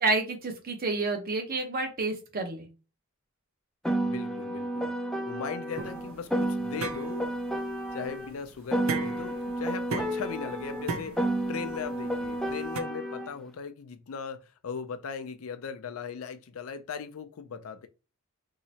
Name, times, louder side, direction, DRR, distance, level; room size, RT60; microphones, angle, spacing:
voice 1, 0.0-2.7, right 3 dB, 45° right, 0.9 m, -29 dB
Piano, 3.8-8.3 8.7-13.3, right 1 dB, 5° left, 0.4 m, -31 dB
voice 2, 4.0-4.9 5.3-7.4 7.9-17.9, left 6 dB, 70° left, 0.4 m, -38 dB
sound 1, 5.8-12.8, right 4 dB, 65° right, 0.5 m, -38 dB
3.0 x 2.8 x 2.8 m
head